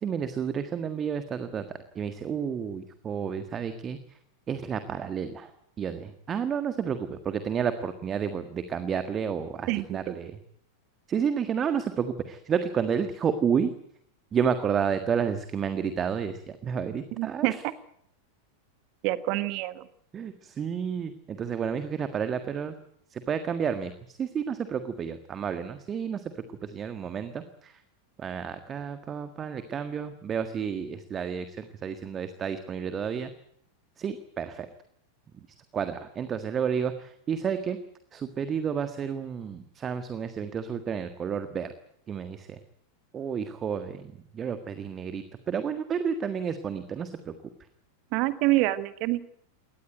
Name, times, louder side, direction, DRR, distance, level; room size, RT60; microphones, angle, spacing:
voice 1, 0.0-1.7 2.0-4.2 4.5-5.5 5.8-10.4 11.1-13.7 14.3-17.6 20.1-22.8 23.1-26.3 26.6-27.8 28.2-33.3 34.0-34.7 35.7-37.8 38.1-41.7 42.1-42.6 43.1-47.3, right 7 dB, 25° right, 10 dB, 1.6 m, -31 dB
voice 2, 9.7-10.0 17.2-17.7 19.0-19.9 48.1-49.2, right 18 dB, 45° right, 15 dB, 1.4 m, -26 dB
22.5 x 19.0 x 9.2 m, 0.70 s
figure-of-eight pair, 90°, 0 cm